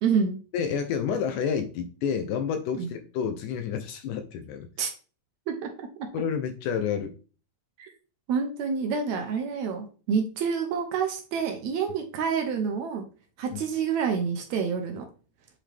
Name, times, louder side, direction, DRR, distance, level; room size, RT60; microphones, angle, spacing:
voice 1, 0.0-0.4 2.7-2.9 4.8-4.9 5.5-6.1 7.8-7.9 8.3-13.1 13.4-15.1, right 6 dB, 70° right, 5 dB, 1.8 m, -28 dB
voice 2, 0.5-4.7 6.1-7.1 13.5-13.6, left 7 dB, 80° left, 8 dB, 2.0 m, -29 dB
8.2 x 3.7 x 3.3 m, 0.37 s
omnidirectional pair, 4.0 m